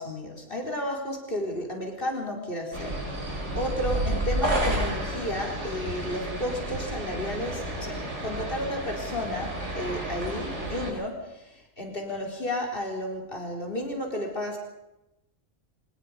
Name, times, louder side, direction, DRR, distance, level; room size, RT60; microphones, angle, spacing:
voice 1, 0.0-11.4 11.8-14.6, left 1 dB, 45° left, 1 dB, 4.5 m, -32 dB
sound 1, 2.7-10.9, right 1 dB, 60° right, 4.5 m, -31 dB
24.5 x 20.5 x 5.1 m, 0.93 s
omnidirectional pair, 1.3 m